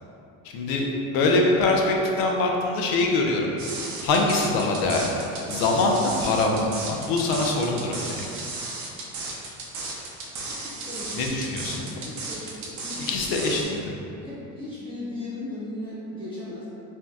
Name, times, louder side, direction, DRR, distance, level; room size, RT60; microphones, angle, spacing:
voice 1, 0.5-3.7 4.0-5.2 5.5-8.2 11.1-11.9 13.0-14.0, left 2 dB, 65° left, 0 dB, 0.5 m, -24 dB
sound 1, 3.6-13.6, right 3 dB, 45° right, 0.5 m, -34 dB
voice 2, 10.6-11.2 12.0-13.1 14.2-16.7, left 1 dB, 15° left, -12 dB, 0.8 m, -37 dB
2.7 x 2.2 x 3.4 m, 2.7 s
cardioid pair, 130°, 39 cm